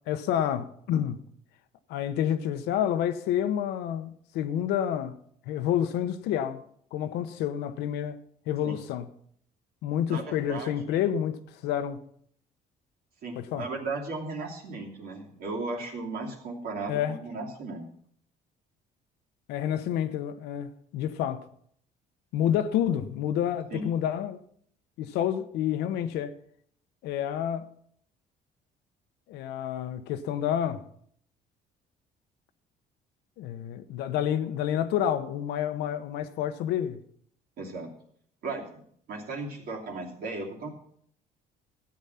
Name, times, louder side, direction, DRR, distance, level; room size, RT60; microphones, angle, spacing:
voice 1, 0.1-1.2 1.9-5.2 5.5-6.6 6.9-8.2 8.5-9.1 9.8-12.0 13.4-13.7 16.9-17.2 19.5-21.4 22.3-24.4 25.0-26.4 27.0-27.7 29.3-30.8 33.4-37.0, left 10 dB, 90° left, 1.0 m, -29 dB
voice 2, 10.1-11.0 13.2-17.8 23.7-23.8 37.6-37.9 38.4-40.7, right 3 dB, 65° right, 2.9 m, -36 dB
13.0 x 9.0 x 5.8 m
cardioid pair, 110°, 17 cm